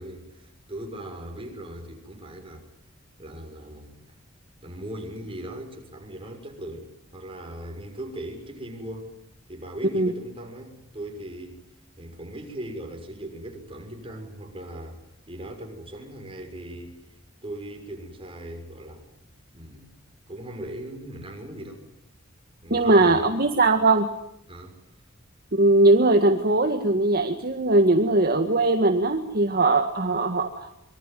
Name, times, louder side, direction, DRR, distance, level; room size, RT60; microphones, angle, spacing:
voice 1, 0.0-2.7 3.2-3.9 4.6-9.1 9.5-11.6 12.0-15.0 15.3-17.0 17.4-19.1 19.5-19.9 20.3-21.8 22.6-23.5 24.5-24.8, right 1 dB, 25° right, 6.5 m, -39 dB
voice 2, 22.7-24.1 25.6-30.7, right 2 dB, 50° right, 1.8 m, -20 dB
25.5 x 24.0 x 9.3 m
head